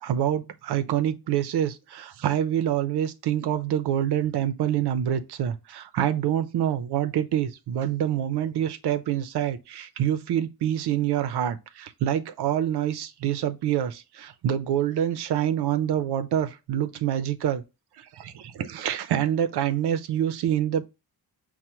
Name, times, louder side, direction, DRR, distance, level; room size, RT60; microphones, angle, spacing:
voice 1, 0.0-17.6 18.0-20.8, right 10 dB, 80° right, 0.6 m, -26 dB
5.5 x 2.2 x 2.9 m
wide cardioid pair, 145°, 39 cm